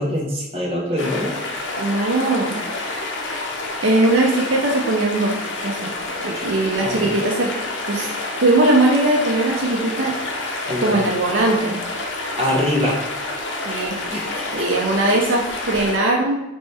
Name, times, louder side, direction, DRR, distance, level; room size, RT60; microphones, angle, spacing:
voice 1, 0.0-1.4 6.3-6.5 6.8-7.1 10.7-11.0 12.4-13.0 14.1-14.7, left 1 dB, 35° right, -5 dB, 1.2 m, -24 dB
sound 1, 1.0-16.0, left 2 dB, 75° left, 0.6 m, -28 dB
voice 2, 1.8-3.2 3.8-5.4 5.6-5.9 6.2-7.5 7.9-8.1 8.4-10.2 10.8-11.8 13.7-14.0 14.5-16.4, right 2 dB, 80° right, -1 dB, 0.6 m, -20 dB
4.3 x 2.9 x 3.4 m, 0.97 s
head